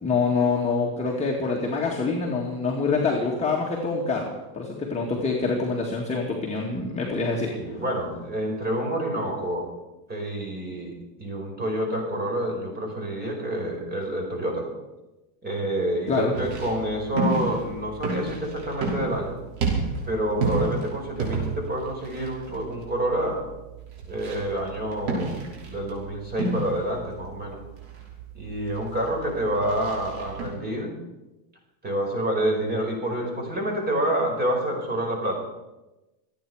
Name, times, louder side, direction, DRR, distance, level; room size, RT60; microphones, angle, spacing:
voice 1, 0.0-7.5 16.1-16.3, left 4 dB, 15° left, -3 dB, 2.0 m, -25 dB
voice 2, 7.5-9.6 10.1-14.7 15.4-19.3 20.1-23.4 24.1-27.6 28.3-30.9 31.8-35.3, right 1 dB, 20° right, 1 dB, 5.1 m, -28 dB
sound 1, 16.3-30.5, right 3 dB, 60° right, 5.9 m, -31 dB
27.5 x 9.3 x 4.9 m, 1.0 s
supercardioid pair, 140°, 49 cm